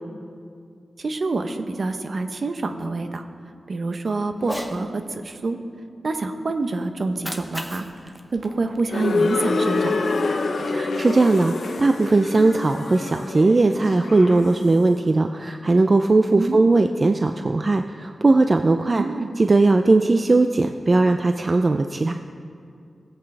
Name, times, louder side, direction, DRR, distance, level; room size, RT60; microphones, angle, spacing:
voice 1, 1.0-3.2 3.7-5.6 6.0-7.9 8.3-10.0 16.4-16.6 18.9-19.3, right 3 dB, 60° right, 8 dB, 0.7 m, -27 dB
Cat, 4.4-4.8 7.0-9.4, equal, 5° left, 1.0 m, -36 dB
sound 1, 8.9-14.8, left 3 dB, 75° left, 0.8 m, -26 dB
voice 2, 10.7-19.0 19.4-22.1, right 3 dB, 45° right, 7 dB, 0.4 m, -19 dB
17.5 x 8.2 x 3.3 m, 2.4 s
cardioid pair, 55°, 0 cm